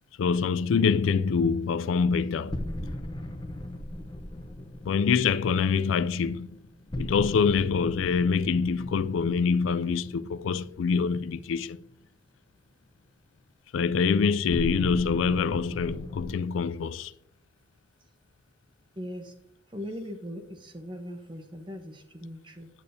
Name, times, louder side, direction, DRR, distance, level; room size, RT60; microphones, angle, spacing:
voice 1, 0.2-2.7 4.8-6.5 7.0-11.8 13.7-17.1, left 5 dB, 90° left, 0.3 m, -25 dB
sound 1, 2.5-11.5 14.5-16.3, left 1 dB, 25° left, 0.7 m, -38 dB
voice 2, 19.0-19.3 19.7-22.7, equal, 25° right, 0.9 m, -39 dB
8.5 x 8.3 x 2.7 m
head